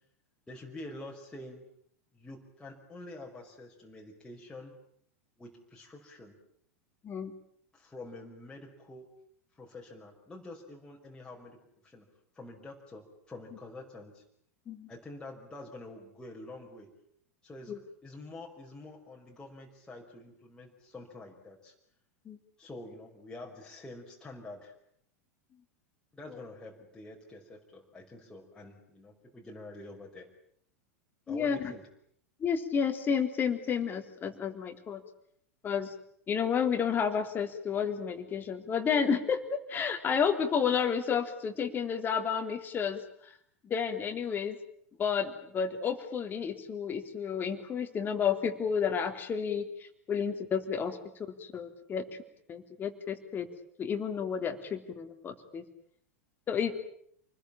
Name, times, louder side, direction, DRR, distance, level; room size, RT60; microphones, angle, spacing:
voice 1, 0.5-1.6 2.1-4.7 5.4-6.4 7.7-9.1 9.6-12.1 12.4-14.2 14.9-16.9 17.4-21.7 22.6-24.7 26.1-30.3 31.3-31.8, left 2 dB, 10° left, -2 dB, 5.5 m, -47 dB
voice 2, 31.3-31.6 32.4-35.0 35.6-35.9 36.3-43.0 43.6-44.6 45.0-49.6 50.1-51.0 51.5-52.0 52.5-53.5 53.8-55.6 56.5-56.7, left 7 dB, 25° left, 7 dB, 3.6 m, -31 dB
28.5 x 21.0 x 8.9 m, 0.67 s
figure-of-eight pair, 90°, 8 cm